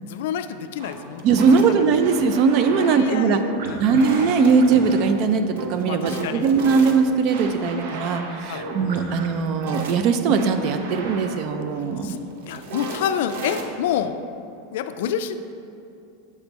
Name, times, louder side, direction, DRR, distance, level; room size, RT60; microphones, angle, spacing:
voice 1, 0.0-1.8 2.7-3.8 5.9-6.5 8.5-8.7 12.0-12.2 12.5-14.2 14.7-15.4, left 9 dB, 70° left, 10 dB, 0.3 m, -28 dB
sound 1, 0.8-14.0, right 3 dB, 70° right, 0.7 m, -35 dB
voice 2, 1.2-3.4 3.8-12.1, right 5 dB, 40° right, 8 dB, 0.4 m, -20 dB
8.1 x 3.0 x 5.2 m, 2.6 s
supercardioid pair, 165°, 0 cm